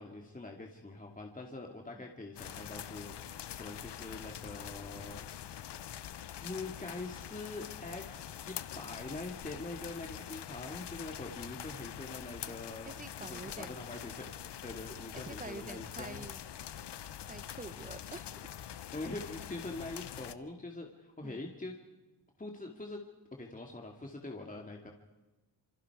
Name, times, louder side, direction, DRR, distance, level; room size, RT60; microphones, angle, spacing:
voice 1, 0.0-5.3 6.4-12.9 13.2-14.3 14.6-16.3 18.9-21.7 22.4-23.0 23.4-24.9, left 2 dB, 20° left, 1 dB, 2.3 m, -44 dB
sound 1, 2.4-20.4, left 10 dB, 75° left, 0.9 m, -45 dB
voice 2, 12.9-13.8 15.1-16.4 17.3-18.3 21.2-21.4, right 3 dB, 20° right, 15 dB, 0.9 m, -47 dB
27.0 x 25.5 x 4.8 m, 1.1 s
wide cardioid pair, 100°, 41 cm